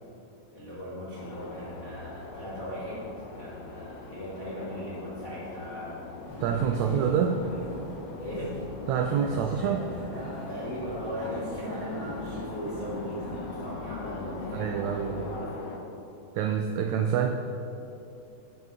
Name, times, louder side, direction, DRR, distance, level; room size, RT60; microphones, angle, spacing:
voice 1, 0.5-6.0 6.7-7.2 7.4-7.7 8.2-8.6 10.5-15.8, equal, 55° left, -8 dB, 0.9 m, -38 dB
sound 1, 1.1-15.8, left 3 dB, 85° left, 2.5 m, -42 dB
Vehicle, 6.2-15.4, equal, 50° right, 2.7 m, -41 dB
voice 2, 6.4-7.4 8.9-9.9 14.5-15.3 16.3-17.3, right 8 dB, 85° right, 5 dB, 1.6 m, -27 dB
11.0 x 8.3 x 3.7 m, 2.8 s
omnidirectional pair, 3.7 m